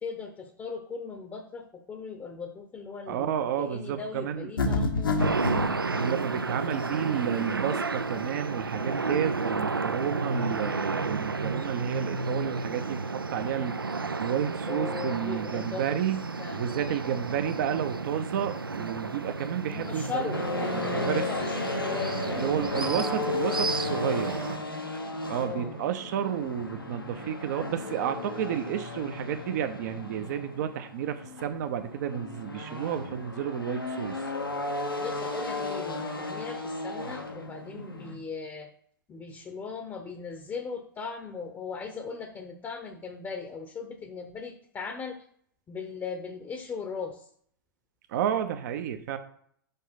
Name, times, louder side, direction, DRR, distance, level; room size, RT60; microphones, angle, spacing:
voice 1, 0.0-5.7 14.7-15.9 16.4-16.6 19.7-22.5 25.4-25.7 35.0-38.7 39.1-45.2 45.7-47.3, left 5 dB, 20° left, 6 dB, 0.8 m, -38 dB
voice 2, 3.1-4.5 5.9-13.8 14.2-16.2 16.5-21.2 22.4-24.4 25.3-34.2 48.1-49.2, right 9 dB, 50° right, 8 dB, 0.7 m, -31 dB
sound 1, 4.6-5.7, left 3 dB, 75° left, 1.3 m, -26 dB
sound 2, 5.2-24.6, right 4 dB, 85° right, 0.5 m, -32 dB
sound 3, 20.3-38.1, left 3 dB, 90° left, 1.4 m, -34 dB
5.3 x 5.3 x 5.7 m, 0.64 s
figure-of-eight pair, 100°, 12 cm